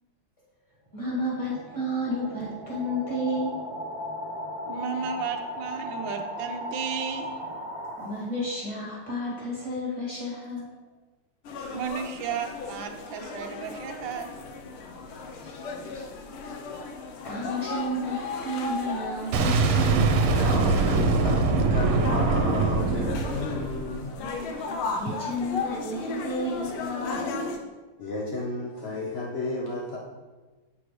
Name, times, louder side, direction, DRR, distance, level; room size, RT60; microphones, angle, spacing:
voice 1, 0.9-3.5 8.0-10.7 15.4-16.6 17.2-20.2 24.9-27.5, equal, 15° left, -6 dB, 2.1 m, -32 dB
sound 1, 0.9-8.6, equal, 45° right, 0.4 m, -37 dB
voice 2, 4.7-7.3 11.7-14.3, right 7 dB, 70° right, 4 dB, 1.4 m, -33 dB
sound 2, 11.4-27.6, left 3 dB, 85° left, 1.6 m, -36 dB
Boom, 19.3-24.2, right 3 dB, 85° right, 1.6 m, -23 dB
voice 3, 20.4-21.4 21.7-24.1 24.6-24.7 28.0-30.0, left 2 dB, 65° left, -3 dB, 0.6 m, -32 dB
8.3 x 6.0 x 3.1 m, 1.2 s
omnidirectional pair, 2.3 m